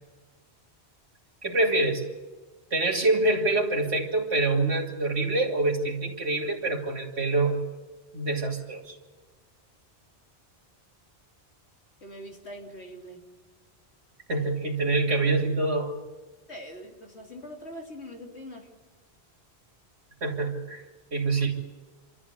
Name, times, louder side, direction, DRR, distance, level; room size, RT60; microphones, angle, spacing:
voice 1, 1.4-2.0 2.7-7.6 8.1-9.0 14.3-15.9 20.2-20.8 21.1-21.5, right 2 dB, 80° right, 0 dB, 3.1 m, -25 dB
voice 2, 12.0-13.2 16.5-18.7, equal, 85° left, 1 dB, 3.4 m, -42 dB
26.5 x 13.5 x 9.8 m, 1.3 s
omnidirectional pair, 1.1 m